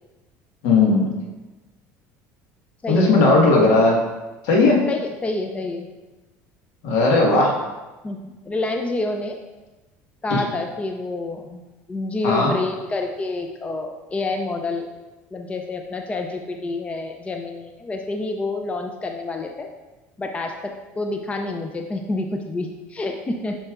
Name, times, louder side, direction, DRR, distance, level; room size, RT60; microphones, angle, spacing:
voice 1, 0.6-1.1 2.9-4.0 4.4-4.8 6.8-7.6 12.2-12.5, left 3 dB, 75° left, -2 dB, 1.7 m, -16 dB
voice 2, 4.9-5.9 8.0-9.4 10.2-11.6 11.9-14.9 15.3-19.7 20.2-23.6, left 2 dB, 20° left, 4 dB, 0.5 m, -28 dB
7.5 x 5.5 x 2.5 m, 1.1 s
supercardioid pair, 105°, 7 cm